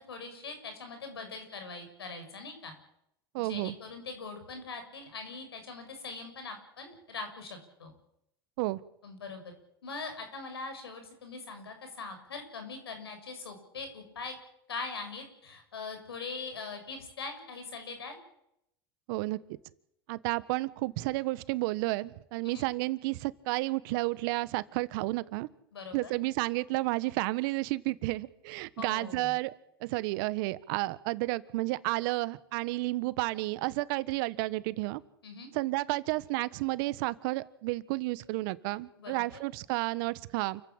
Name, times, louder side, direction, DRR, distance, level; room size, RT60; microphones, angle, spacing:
voice 1, 0.1-2.7 3.4-7.9 9.0-9.4 9.8-14.4 14.7-18.2 22.4-22.7 25.7-26.1 28.8-29.4 35.2-35.5 39.0-39.2, left 4 dB, 85° left, 7 dB, 7.0 m, -42 dB
voice 2, 3.3-3.7 8.6-8.8 19.1-19.4 20.1-25.5 25.9-29.5 29.8-35.0 35.5-40.6, right 21 dB, 65° right, 16 dB, 1.4 m, -31 dB
28.5 x 15.0 x 8.9 m, 0.80 s
hypercardioid pair, 85°, 13 cm